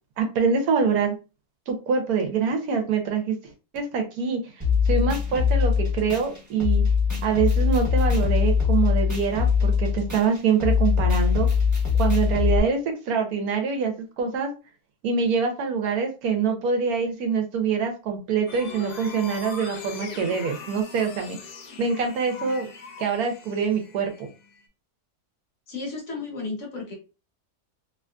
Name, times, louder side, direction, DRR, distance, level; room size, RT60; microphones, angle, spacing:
voice 1, 0.2-1.2 1.7-3.3 3.7-4.4 4.9-6.8 7.2-11.5 12.0-14.5 15.0-21.4 21.8-22.7 23.0-24.3, right 5 dB, 75° right, 4 dB, 1.1 m, -25 dB
sound 1, 4.6-12.6, left 6 dB, 15° right, 0.9 m, -22 dB
sound 2, 18.5-24.7, left 5 dB, 90° left, 1.2 m, -41 dB
voice 2, 25.7-26.9, left 3 dB, 55° left, 0 dB, 1.1 m, -33 dB
3.0 x 2.4 x 2.2 m, 0.31 s
omnidirectional pair, 1.7 m